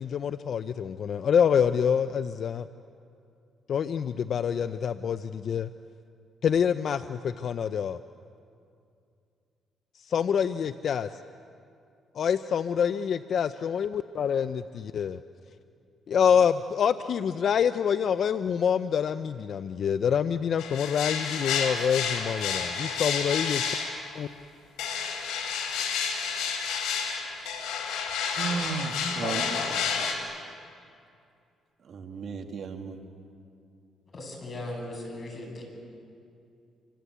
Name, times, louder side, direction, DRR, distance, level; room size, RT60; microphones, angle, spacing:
voice 1, 0.0-2.7 3.7-5.7 6.4-8.0 9.9-11.1 12.1-15.2 16.1-23.6 24.2-24.3, left 7 dB, 60° left, 12 dB, 0.6 m, -26 dB
sound 1, 20.6-24.1 24.8-30.1, left 6 dB, 85° left, 4.6 m, -30 dB
voice 2, 27.3-27.8 28.3-29.9 31.8-33.0, right 4 dB, 60° right, 4 dB, 2.5 m, -35 dB
voice 3, 34.1-35.6, left 1 dB, 40° left, 2 dB, 7.9 m, -38 dB
28.0 x 25.5 x 8.3 m, 2.5 s
cardioid pair, 90°, 0 cm